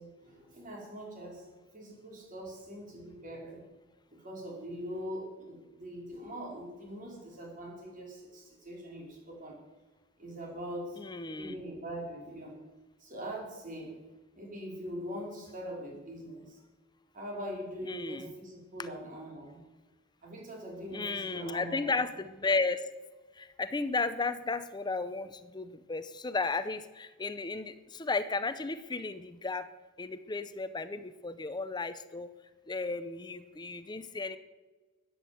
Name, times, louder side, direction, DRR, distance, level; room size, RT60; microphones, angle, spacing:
voice 1, 0.0-1.5 1.7-3.6 4.1-9.6 10.2-11.0 11.4-12.5 13.0-13.9 14.3-16.6 17.1-19.6 20.2-21.9, equal, 40° right, -2 dB, 4.9 m, -42 dB
voice 2, 11.0-11.6 17.9-18.3 20.9-22.9 23.4-29.7 30.0-32.3 32.7-34.4, left 3 dB, 20° left, 12 dB, 0.6 m, -34 dB
14.5 x 10.5 x 7.9 m, 1.3 s
head